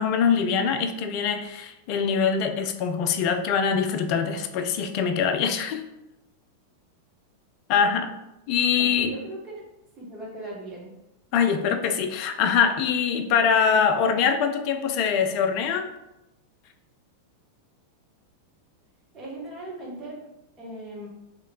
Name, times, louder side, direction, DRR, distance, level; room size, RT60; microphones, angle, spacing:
voice 1, 0.0-5.8 7.7-8.1 8.5-9.1 11.3-15.9, left 6 dB, 45° left, 7 dB, 0.4 m, -23 dB
voice 2, 7.7-8.0 8.8-9.7 10.0-10.9 13.7-13.8 19.1-20.2 20.6-21.1, right 1 dB, 30° right, -4 dB, 1.3 m, -38 dB
3.1 x 3.0 x 3.7 m, 0.92 s
figure-of-eight pair, 90°, 0 cm